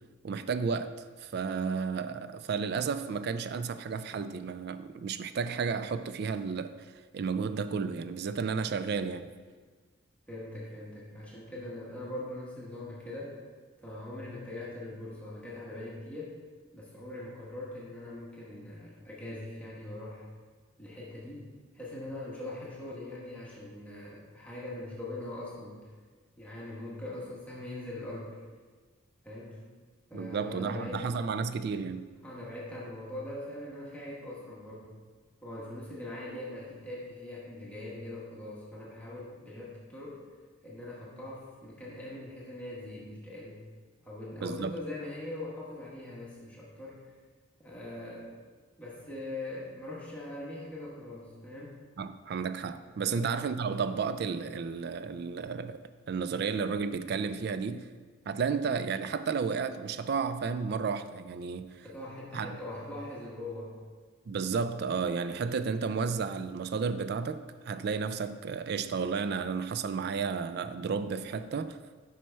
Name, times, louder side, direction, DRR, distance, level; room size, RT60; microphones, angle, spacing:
voice 1, 0.2-6.7 7.1-9.3 30.1-32.1 44.4-44.8 52.0-55.8 56.1-57.9 58.3-61.9 62.3-62.6 64.3-71.8, right 5 dB, 50° right, 0.3 m, -32 dB
voice 2, 10.3-13.4 13.8-16.3 16.7-20.3 20.8-21.5 21.7-25.8 26.4-28.4 29.2-29.6 30.1-31.1 32.2-34.9 35.4-40.2 40.6-43.6 44.0-47.0 47.6-48.3 48.8-51.8 53.1-53.2 61.8-63.8, left 1 dB, 5° left, 1.3 m, -41 dB
6.2 x 5.5 x 4.5 m
head